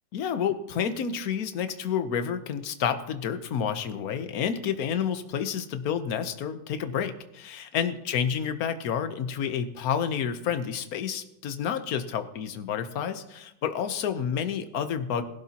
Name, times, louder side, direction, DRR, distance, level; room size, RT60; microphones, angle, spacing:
voice 1, 0.1-15.2, left 8 dB, 60° left, 9 dB, 1.2 m, -29 dB
20.5 x 12.0 x 2.9 m, 0.85 s
omnidirectional pair, 2.0 m